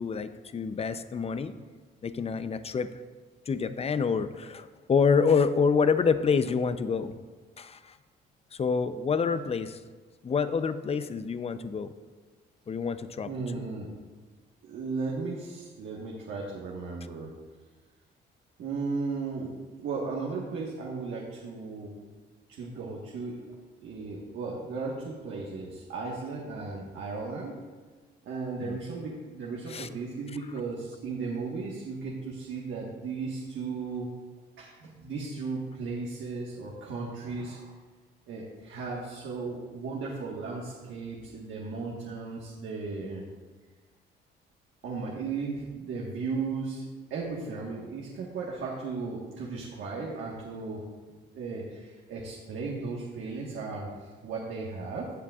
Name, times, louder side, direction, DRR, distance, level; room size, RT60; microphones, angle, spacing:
voice 1, 0.0-1.5 2.0-2.9 3.5-7.2 7.6-8.0 8.5-9.8 10.2-11.9 12.7-13.6 28.6-28.8 29.7-29.9, left 5 dB, 30° left, 11 dB, 0.6 m, -27 dB
voice 2, 13.2-13.9 14.6-17.3 18.6-19.5 19.8-22.1 22.5-23.5 23.8-27.5 28.2-34.1 34.6-37.7 38.3-43.2 44.8-50.9 51.3-55.1, right 4 dB, 75° right, -3 dB, 1.5 m, -36 dB
15.5 x 7.5 x 2.4 m, 1.4 s
cardioid pair, 90°, 20 cm